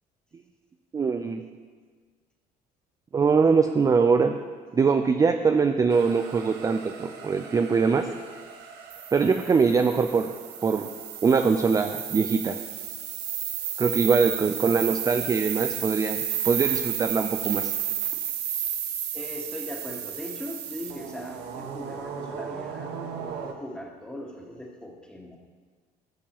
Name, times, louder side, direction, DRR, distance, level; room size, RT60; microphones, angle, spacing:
voice 1, 0.9-1.4 3.1-4.4 4.7-8.1 9.1-10.3 10.6-10.9 11.2-12.6 13.8-17.7, right 5 dB, 20° right, 6 dB, 0.4 m, -22 dB
sound 1, 5.9-23.5, right 9 dB, 80° right, 0.9 m, -33 dB
voice 2, 19.1-25.4, left 1 dB, 5° left, 0 dB, 1.3 m, -39 dB
12.5 x 7.2 x 3.0 m, 1.5 s
cardioid pair, 110°, 17 cm